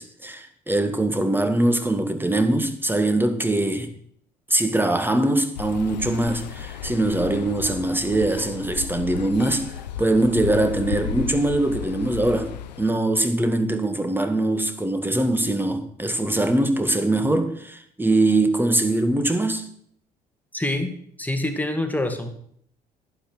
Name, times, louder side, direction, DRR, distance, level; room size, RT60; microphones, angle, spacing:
voice 1, 0.0-3.9 4.5-9.7 10.0-19.7, right 1 dB, 10° right, 1.9 m, -22 dB
sound 1, 5.6-12.9, left 8 dB, 85° left, 0.6 m, -34 dB
voice 2, 20.5-20.9 21.2-22.3, left 1 dB, 10° left, 2.3 m, -25 dB
11.5 x 8.8 x 6.3 m
hypercardioid pair, 50°, 21 cm